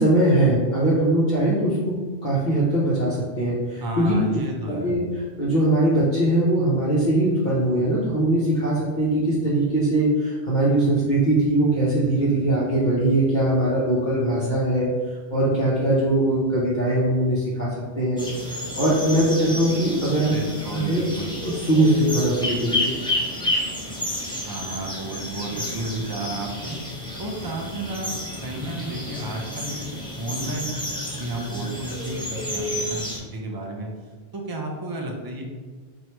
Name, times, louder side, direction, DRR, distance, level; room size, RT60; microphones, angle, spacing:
voice 1, 0.0-1.9 2.2-4.4 4.7-5.0 5.4-14.9 15.3-17.7 18.0-18.3 18.5-20.3 20.7-21.0 21.4-22.9, right 1 dB, 45° left, -9 dB, 0.9 m, -21 dB
voice 2, 3.8-4.9 20.3-21.4 24.5-26.8 27.2-28.1 28.4-30.8 31.1-33.9 34.3-35.4, right 1 dB, 35° right, 0 dB, 0.4 m, -32 dB
sound 1, 18.2-33.2, left 1 dB, 5° left, 0.6 m, -30 dB
3.1 x 2.7 x 4.4 m, 1.4 s
omnidirectional pair, 1.1 m